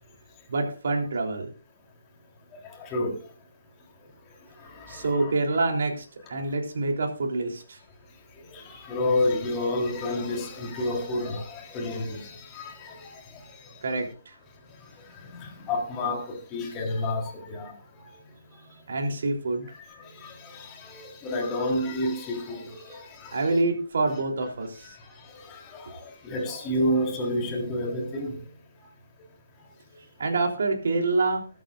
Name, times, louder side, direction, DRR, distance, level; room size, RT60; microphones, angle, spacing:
voice 1, 0.5-1.5 4.9-7.8 13.8-14.3 18.9-19.7 23.3-24.9 30.2-31.4, right 3 dB, 60° right, 3.4 m, -26 dB
voice 2, 2.8-3.2 4.7-5.3 8.5-13.4 15.3-17.7 18.0-18.1 20.2-23.5 24.0-24.2 24.8-25.0 25.3-28.4, left 1 dB, 20° left, 3.7 m, -30 dB
21.0 x 8.8 x 2.5 m
figure-of-eight pair, 145°, 0 cm